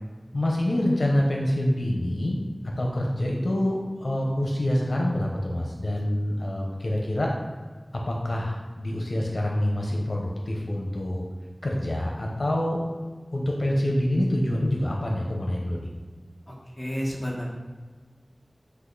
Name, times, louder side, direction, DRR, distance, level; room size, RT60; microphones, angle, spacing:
voice 1, 0.3-2.4 2.8-7.3 8.1-11.2 11.6-12.8 13.3-15.9, left 1 dB, 80° left, -1 dB, 0.9 m, -26 dB
voice 2, 16.5-17.5, equal, 25° left, -3 dB, 1.5 m, -31 dB
8.0 x 2.9 x 4.0 m, 1.4 s
wide cardioid pair, 50°, 0 cm